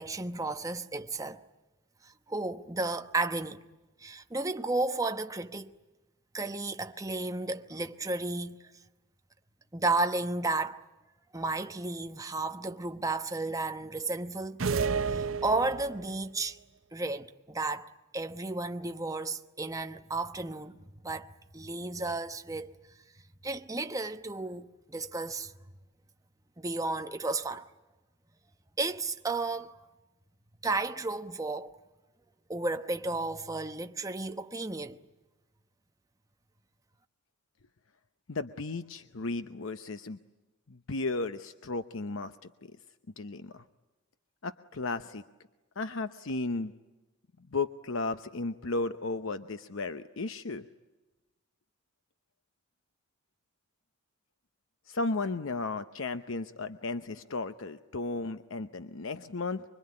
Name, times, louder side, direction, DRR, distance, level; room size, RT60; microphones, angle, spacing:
voice 1, 0.0-1.4 2.3-3.6 4.0-5.7 6.3-8.6 9.7-10.8 11.3-14.6 15.1-16.6 16.9-22.8 23.4-25.5 26.6-27.7 28.8-29.7 30.6-31.8 32.5-35.0, right 2 dB, 15° right, 1.0 m, -33 dB
sound 1, 14.6-16.2, right 5 dB, 80° right, 0.9 m, -30 dB
voice 2, 38.3-40.2 40.7-42.3 42.6-42.7 43.2-43.6 44.4-45.2 45.8-46.7 47.5-50.6 54.9-59.6, left 3 dB, 75° left, 0.9 m, -34 dB
25.0 x 24.0 x 9.8 m
head